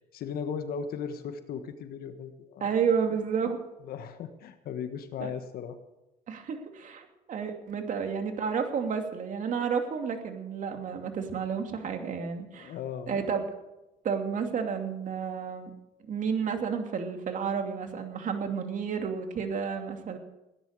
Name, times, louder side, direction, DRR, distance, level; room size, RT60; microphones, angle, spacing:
voice 1, 0.1-2.8 3.8-5.8 12.5-13.2, left 7 dB, 70° left, 9 dB, 1.5 m, -37 dB
voice 2, 2.6-3.6 5.2-5.3 6.3-12.7 13.1-13.4 14.0-15.7 16.1-20.2, right 6 dB, 55° right, 5 dB, 2.6 m, -31 dB
17.0 x 10.5 x 6.8 m, 0.95 s
cardioid pair, 95°, 16 cm